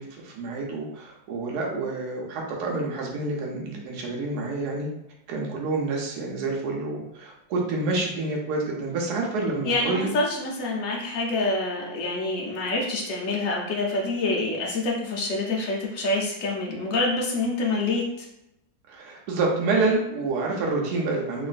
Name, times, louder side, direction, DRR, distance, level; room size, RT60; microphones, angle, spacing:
voice 1, 0.0-4.9 5.3-10.1 18.9-21.5, right 3 dB, 65° right, -1 dB, 1.1 m, -28 dB
voice 2, 9.6-18.3, left 2 dB, 80° left, -2 dB, 0.7 m, -26 dB
3.0 x 2.5 x 2.4 m, 0.86 s
omnidirectional pair, 2.0 m